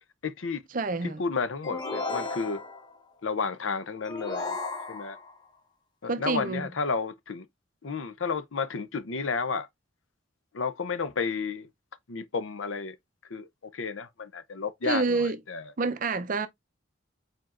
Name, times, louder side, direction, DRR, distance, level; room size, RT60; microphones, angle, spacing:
voice 1, 0.2-0.6 1.2-2.6 3.2-4.6 4.9-5.2 6.0-7.5 7.8-9.7 10.5-11.7 12.1-13.0 13.3-15.2 15.5-15.6, left 4 dB, 75° left, 0.6 m, -31 dB
voice 2, 0.7-1.2 6.0-6.7 14.8-15.4 15.8-16.5, right 3 dB, 40° right, 0.5 m, -28 dB
sound 1, 1.6-3.0 4.0-5.4, left 3 dB, 20° left, 0.7 m, -34 dB
4.9 x 4.4 x 2.4 m
head